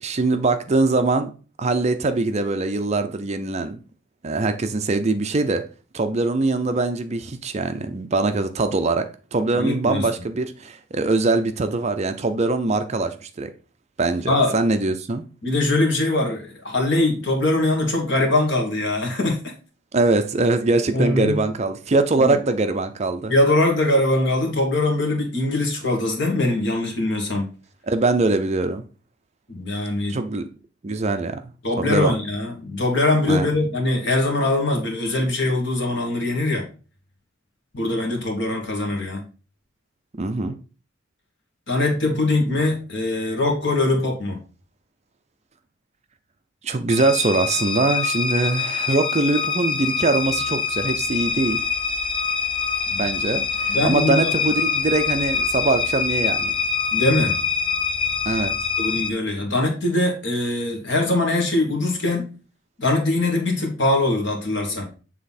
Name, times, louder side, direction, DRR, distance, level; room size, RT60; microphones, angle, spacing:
voice 1, 0.0-1.3 1.6-3.8 4.2-5.6 5.9-13.5 14.0-15.2 19.9-23.3 27.9-28.8 30.1-30.5 30.8-31.4 31.8-32.1 33.3-33.5 40.2-40.6 46.6-51.6 53.0-56.5 58.3-58.5, right 3 dB, 30° right, 0.5 m, -22 dB
voice 2, 9.5-10.1 14.3-14.6 15.4-19.4 20.9-21.4 22.2-22.4 23.3-27.5 29.5-30.2 31.6-36.7 37.7-39.2 41.7-44.4 52.9-53.0 53.7-54.3 56.9-57.4 58.8-62.3 62.8-64.9, left 2 dB, 60° left, 1.8 m, -22 dB
sound 1, 46.9-59.1, left 5 dB, 25° left, 0.6 m, -24 dB
7.4 x 3.4 x 4.1 m
head